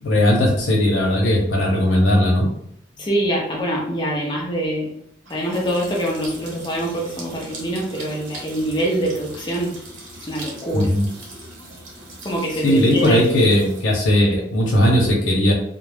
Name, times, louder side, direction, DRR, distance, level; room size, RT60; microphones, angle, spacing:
voice 1, 0.0-2.5 10.7-11.1 12.6-15.5, left 1 dB, 90° left, -1 dB, 0.8 m, -17 dB
sound 1, 0.8-13.8, right 1 dB, 85° right, 0.8 m, -41 dB
voice 2, 3.0-4.9 5.3-9.7 10.2-10.9 12.2-13.2, right 1 dB, 25° left, -3 dB, 0.5 m, -24 dB
2.4 x 2.0 x 3.2 m, 0.71 s
head